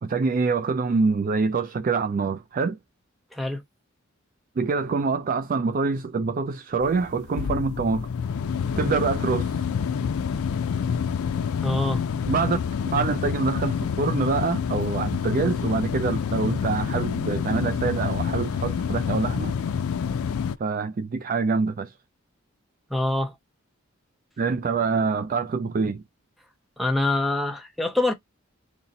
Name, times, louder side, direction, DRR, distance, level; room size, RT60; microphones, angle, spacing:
voice 1, 0.0-2.8 4.6-8.1 8.8-9.5 12.3-12.6 12.9-19.5 20.6-21.9 24.4-26.0, right 4 dB, 40° right, 0.3 m, -25 dB
sound 1, 6.8-20.6, left 6 dB, 80° left, 0.4 m, -27 dB
voice 2, 11.6-12.0 22.9-23.3 26.8-28.1, left 2 dB, ahead, 0.7 m, -25 dB
4.1 x 2.1 x 3.9 m
head